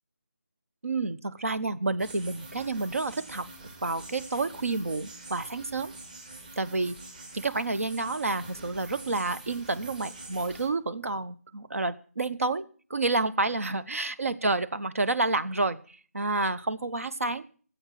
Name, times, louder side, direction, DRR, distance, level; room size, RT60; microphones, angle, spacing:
voice 1, 0.8-3.5 3.8-5.9 6.6-6.9 7.3-12.6 12.9-15.8 16.1-17.4, right 3 dB, 60° right, 12 dB, 1.1 m, -29 dB
sound 1, 2.0-10.7, right 2 dB, 30° right, 2.4 m, -46 dB
14.5 x 8.1 x 7.6 m, 0.43 s
figure-of-eight pair, 160°, 8 cm